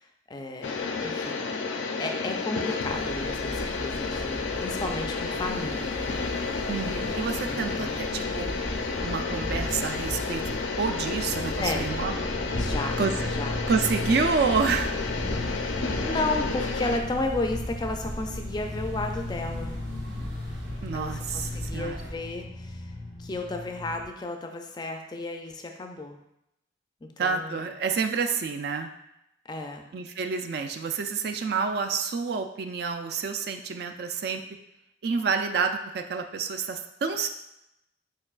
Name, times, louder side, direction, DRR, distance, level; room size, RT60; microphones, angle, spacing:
voice 1, 0.0-1.5 2.0-6.2 7.5-8.0 11.6-12.0 12.6-13.0 13.3-13.7 16.0-19.8 20.9-22.9 23.2-26.2 27.0-27.7 29.5-29.9, left 2 dB, 20° left, 4 dB, 0.3 m, -33 dB
sound 1, 0.6-17.0, left 4 dB, 90° left, 0.5 m, -31 dB
sound 2, 2.8-22.2, equal, 85° right, 1.2 m, -37 dB
voice 2, 6.7-8.5 9.0-12.1 13.0-13.3 13.7-14.9 20.8-22.0 27.2-28.9 29.9-34.4 35.0-37.3, right 5 dB, 55° right, 6 dB, 0.3 m, -28 dB
sound 3, 10.0-24.1, left 2 dB, 30° right, 1.1 m, -39 dB
4.6 x 4.5 x 2.4 m, 0.83 s
head